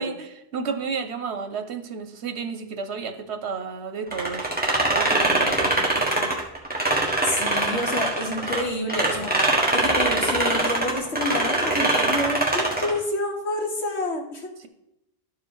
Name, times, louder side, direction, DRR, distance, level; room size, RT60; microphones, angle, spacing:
voice 1, 0.0-4.5 4.9-6.3 14.6-14.7, right 5 dB, 80° right, 8 dB, 1.1 m, -32 dB
sound 1, 4.1-8.6 8.9-13.0, right 2 dB, 10° right, 1.5 m, -23 dB
voice 2, 7.2-9.3 9.7-14.5, left 1 dB, 80° left, 1 dB, 1.8 m, -28 dB
12.0 x 4.9 x 4.7 m, 0.85 s
omnidirectional pair, 1.1 m